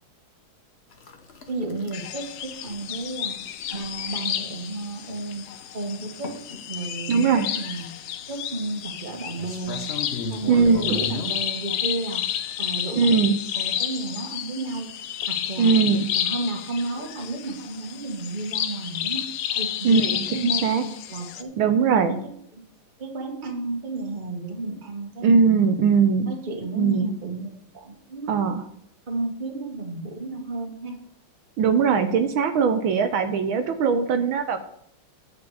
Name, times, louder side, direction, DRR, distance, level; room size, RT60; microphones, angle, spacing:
sound 1, 0.9-12.7, left 3 dB, 40° left, 1.0 m, -39 dB
voice 1, 1.5-3.4 3.7-5.5 5.7-6.3 6.7-7.9 8.3-9.9 10.3-12.2 12.6-13.2 13.5-14.9 15.3-15.9 16.1-19.3 19.5-20.0 20.3-21.5 21.9-22.0 22.5-22.6 23.0-25.9 26.3-28.4 29.1-30.9, right 2 dB, 25° right, 3 dB, 1.5 m, -32 dB
sound 2, 1.9-21.4, left 10 dB, 70° left, 1.0 m, -31 dB
voice 2, 7.1-7.5 10.5-11.0 13.0-13.4 15.6-16.1 19.8-20.8 21.6-22.2 25.2-26.3 26.8-27.1 28.3-28.6 31.6-34.6, right 6 dB, 75° right, 7 dB, 1.6 m, -20 dB
9.7 x 7.8 x 4.8 m, 0.72 s
omnidirectional pair, 2.3 m